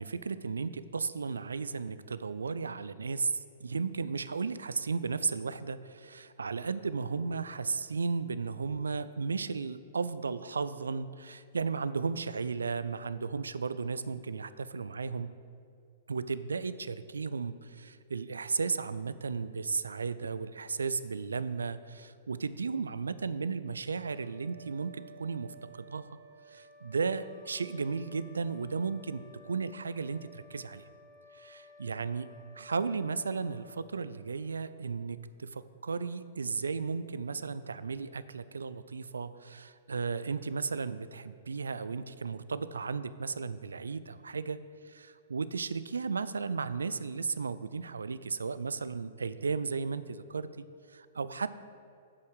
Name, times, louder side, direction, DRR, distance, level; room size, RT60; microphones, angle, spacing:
voice 1, 0.0-15.3 16.1-26.1 26.5-30.8 31.3-32.3 32.5-44.6 44.8-51.6, right 5 dB, 80° right, 14 dB, 0.3 m, -35 dB
sound 1, 23.9-34.6, equal, 50° right, 1.8 m, -55 dB
7.9 x 5.6 x 6.4 m, 2.4 s
figure-of-eight pair, 115°, 0 cm